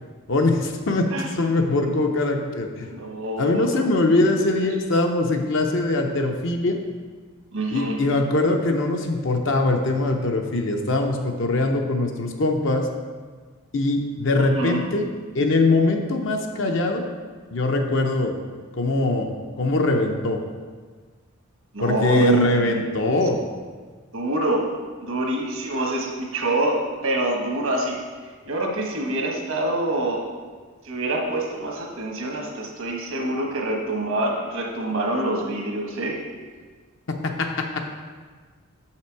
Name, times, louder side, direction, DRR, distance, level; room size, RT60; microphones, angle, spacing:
voice 1, 0.3-2.9 3.4-6.8 7.7-12.9 13.7-15.0 15.3-17.0 17.5-18.4 18.7-19.3 19.6-20.4 21.8-23.4 37.2-37.5, left 2 dB, 60° left, 3 dB, 0.6 m, -22 dB
voice 2, 2.8-3.9 7.5-8.0 14.4-14.9 21.7-22.9 24.1-24.6 25.0-28.0 28.5-30.2 30.8-36.2, right 1 dB, 75° right, 0 dB, 1.3 m, -26 dB
6.8 x 5.7 x 4.6 m, 1.5 s
head